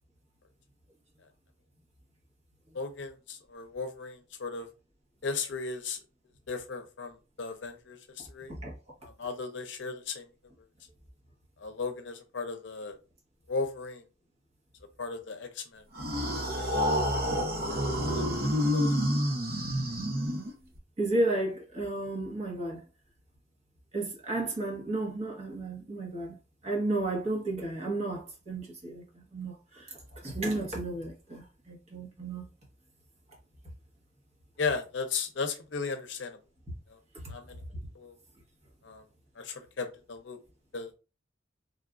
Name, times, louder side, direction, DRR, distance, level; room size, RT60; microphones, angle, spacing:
voice 1, 2.7-4.7 5.2-6.0 6.5-8.5 9.0-10.3 11.6-13.0 13.5-14.0 15.0-15.8 16.6-17.0 17.7-18.9 34.6-36.4 36.9-37.0 37.3-37.6 37.9-38.2 38.8-39.0 39.4-40.4 40.7-40.9, left 4 dB, 70° left, 0.6 m, -36 dB
sound 1, 16.0-20.8, equal, 55° right, 0.7 m, -28 dB
voice 2, 21.0-22.8 23.9-26.3 26.6-32.5, right 2 dB, 35° right, 1.0 m, -33 dB
3.3 x 2.4 x 2.4 m
head